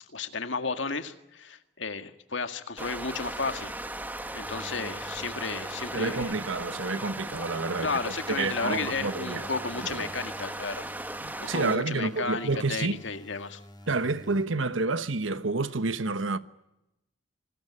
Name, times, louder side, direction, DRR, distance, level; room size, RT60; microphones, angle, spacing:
voice 1, 0.1-3.7 4.3-6.3 7.8-10.8 11.4-13.6, left 4 dB, 70° left, 2.0 m, -33 dB
sound 1, 2.8-11.8, right 1 dB, 10° right, 1.4 m, -37 dB
sound 2, 4.4-14.4, equal, 20° left, 3.6 m, -49 dB
voice 2, 5.9-9.5 9.8-10.1 11.2-13.0 13.9-16.4, right 3 dB, 85° right, 1.2 m, -29 dB
26.0 x 20.0 x 9.9 m
head